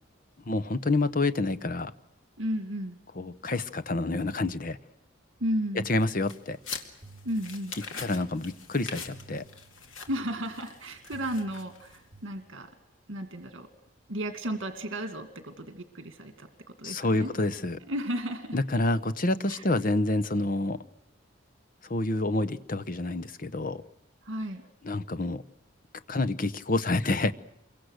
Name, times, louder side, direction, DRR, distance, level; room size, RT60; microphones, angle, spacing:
voice 1, 0.5-1.9 3.2-4.8 5.9-6.6 8.0-9.4 16.8-17.8 18.5-20.8 21.9-23.8 24.8-25.4 26.1-27.3, left 2 dB, 45° left, 12 dB, 0.9 m, -28 dB
voice 2, 2.4-3.0 5.4-5.9 7.2-7.7 10.1-12.7 13.1-13.7 14.1-17.3 17.9-18.6 19.5-19.7 24.2-24.6, equal, 65° right, 7 dB, 2.2 m, -34 dB
sound 1, 5.4-12.2, right 3 dB, 30° right, 4.4 m, -55 dB
sound 2, 5.9-12.2, left 5 dB, 85° left, 2.4 m, -44 dB
27.5 x 23.5 x 6.5 m, 0.84 s
head